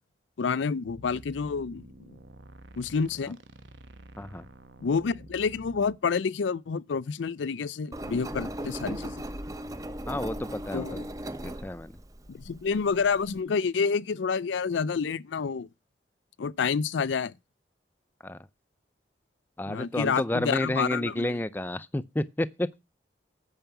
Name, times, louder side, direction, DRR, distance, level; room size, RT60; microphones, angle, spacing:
voice 1, 0.4-2.2 2.8-3.4 4.8-9.2 10.7-11.0 12.3-15.7 16.4-17.3 19.7-21.4, left 5 dB, 90° left, 0.5 m, -29 dB
sound 1, 0.9-6.0, right 1 dB, 85° right, 1.2 m, -49 dB
Engine, 7.9-13.4, right 1 dB, 20° right, 0.7 m, -38 dB
voice 2, 10.1-11.0 11.4-11.9 18.2-18.4 19.6-22.7, left 1 dB, 10° left, 0.5 m, -30 dB
9.0 x 5.8 x 7.0 m
head